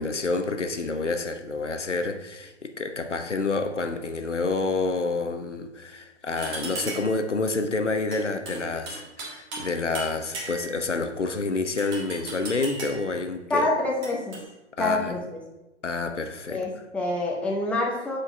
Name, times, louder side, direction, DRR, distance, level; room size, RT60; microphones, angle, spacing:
voice 1, 0.0-13.7 14.8-15.2 15.8-16.6, left 3 dB, 90° left, 7 dB, 1.0 m, -28 dB
sound 1, 6.4-7.2 8.1-9.7 9.9-10.8 11.8-13.1 14.0-14.4, right 3 dB, 25° right, 1.8 m, -37 dB
voice 2, 13.5-14.4 14.8-15.4 16.5-18.2, left 2 dB, 5° left, -2 dB, 0.7 m, -26 dB
6.2 x 5.1 x 5.4 m, 0.98 s
figure-of-eight pair, 125°, 35 cm